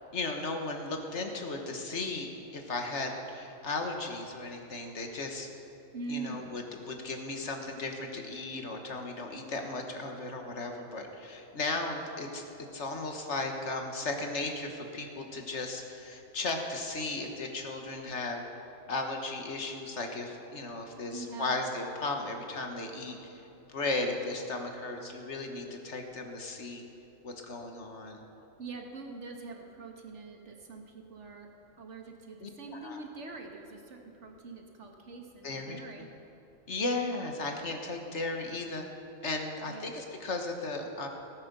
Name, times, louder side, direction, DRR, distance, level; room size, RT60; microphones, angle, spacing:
voice 1, 0.1-2.3 2.5-5.5 6.1-12.4 12.7-18.4 18.9-23.3 23.7-26.8 27.2-28.2 32.4-32.5 32.8-33.0 35.4-35.8 36.7-38.8 39.2-41.1, left 3 dB, 60° left, 3 dB, 1.6 m, -35 dB
voice 2, 5.9-6.5 21.1-21.6 28.6-31.5 31.8-36.1 39.7-39.9, right 3 dB, 60° right, 2 dB, 1.7 m, -43 dB
16.0 x 9.3 x 6.7 m, 3.0 s
omnidirectional pair, 1.4 m